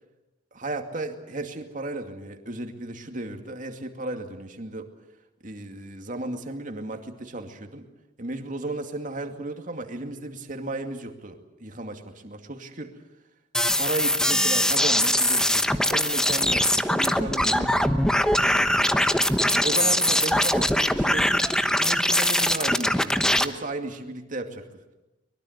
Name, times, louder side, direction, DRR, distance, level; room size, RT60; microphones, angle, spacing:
voice 1, 0.5-4.9 5.4-7.9 8.2-12.9 13.8-17.9 18.5-24.6, right 2 dB, 45° right, 5 dB, 2.4 m, -35 dB
sound 1, 13.5-23.4, left 1 dB, 5° left, 1.0 m, -22 dB
24.0 x 22.0 x 8.1 m, 0.99 s
head